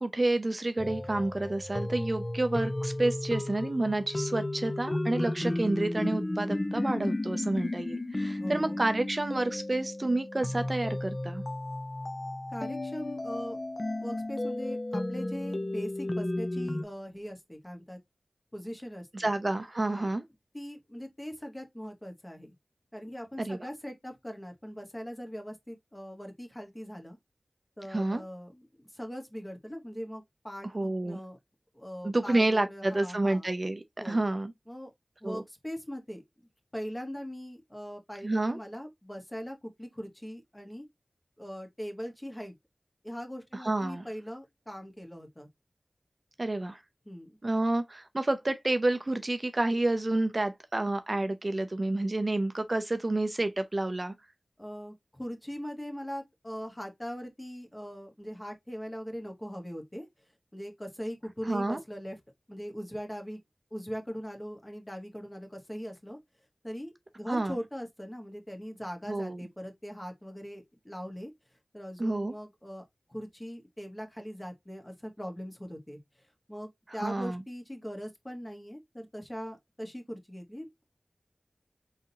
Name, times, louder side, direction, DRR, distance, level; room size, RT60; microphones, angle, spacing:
voice 1, 0.0-11.4 19.1-20.2 23.4-23.6 27.9-28.2 30.7-31.2 32.0-34.5 35.2-35.4 38.2-38.6 43.5-44.1 46.4-46.8 47.4-54.1 61.5-61.8 67.3-67.6 69.1-69.4 72.0-72.3 77.0-77.4, right 2 dB, 45° right, 0.5 m, -29 dB
sound 1, 0.8-16.8, left 1 dB, 35° left, 0.7 m, -33 dB
voice 2, 8.4-8.8 12.5-13.6 14.0-18.0 18.5-19.3 19.9-20.1 20.5-22.5 22.9-27.2 27.8-31.4 31.7-33.5 34.0-34.2 34.7-34.9 35.2-36.2 36.7-40.8 41.4-42.5 43.0-45.5 47.0-47.4 54.6-60.1 60.5-62.2 62.5-63.4 63.7-66.2 66.6-71.3 71.7-72.8 73.1-76.0 76.5-80.8, equal, 20° left, 1.3 m, -41 dB
4.0 x 3.7 x 2.8 m
wide cardioid pair, 50°, 0 cm